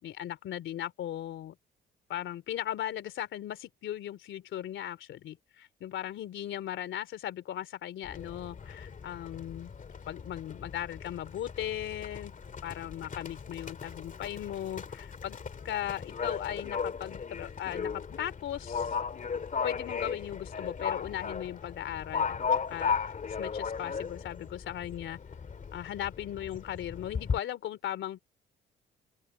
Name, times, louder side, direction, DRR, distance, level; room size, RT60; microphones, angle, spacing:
voice 1, 0.0-1.5 2.1-9.7 10.1-12.3 12.6-15.4 15.6-19.0 19.6-23.1 23.4-25.2 25.7-28.2, left 11 dB, 75° left, 3.1 m, -37 dB
Livestock farm animals working animals, 8.0-27.4, left 6 dB, 40° left, 2.2 m, -36 dB
open air
cardioid pair, 90°, 20 cm